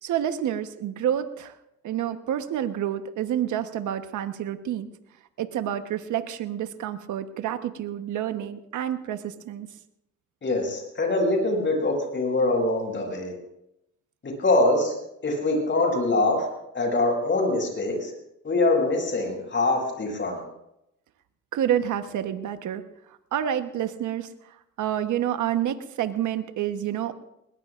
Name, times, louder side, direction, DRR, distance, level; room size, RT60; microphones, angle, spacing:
voice 1, 0.0-1.5 1.8-4.9 5.4-9.7 21.5-22.8 23.3-24.3 24.8-27.1, right 10 dB, 75° right, 9 dB, 1.2 m, -28 dB
voice 2, 10.4-13.3 14.4-14.9 15.2-16.5 16.7-18.1 18.4-20.4, left 2 dB, 40° left, 1 dB, 7.4 m, -23 dB
21.0 x 20.5 x 2.5 m, 0.83 s
cardioid pair, 90°, 30 cm